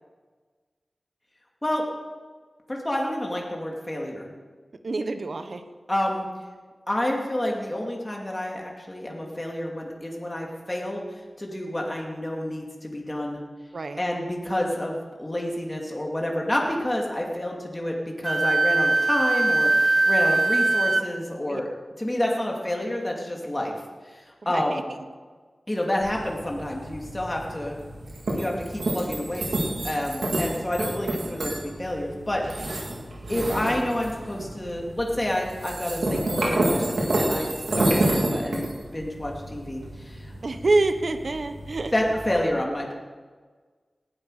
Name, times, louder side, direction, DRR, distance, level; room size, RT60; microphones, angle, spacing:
voice 1, 2.7-4.3 5.9-6.3 6.9-11.0 11.4-13.4 14.0-21.7 22.0-23.7 24.1-24.9 25.7-27.8 28.3-29.5 29.8-32.7 33.3-40.3 41.9-42.9, left 1 dB, 20° left, -1 dB, 2.6 m, -29 dB
voice 2, 4.8-5.6 13.7-14.0 21.5-21.6 24.4-24.8 33.3-33.5 40.4-41.9, right 2 dB, 65° right, 8 dB, 1.1 m, -26 dB
Wind instrument woodwind instrument, 18.2-21.0, right 2 dB, 40° right, 0.6 m, -21 dB
sound 1, 26.0-42.4, right 1 dB, 85° right, 3.9 m, -29 dB
19.0 x 12.0 x 5.0 m, 1.5 s
wide cardioid pair, 75°, 0 cm